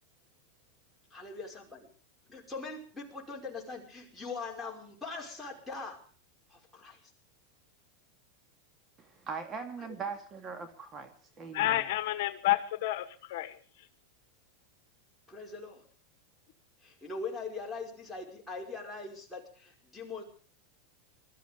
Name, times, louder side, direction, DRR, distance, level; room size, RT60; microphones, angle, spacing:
voice 1, 1.1-1.9 2.3-6.0 6.5-7.0 9.8-10.0 15.3-15.8 16.8-20.2, left 4 dB, 5° left, 5.3 m, -41 dB
voice 2, 9.0-11.9, right 5 dB, 25° right, 2.3 m, -41 dB
voice 3, 11.5-13.5, left 15 dB, 65° left, 1.2 m, -30 dB
21.0 x 13.5 x 5.1 m
supercardioid pair, 125°, 0 cm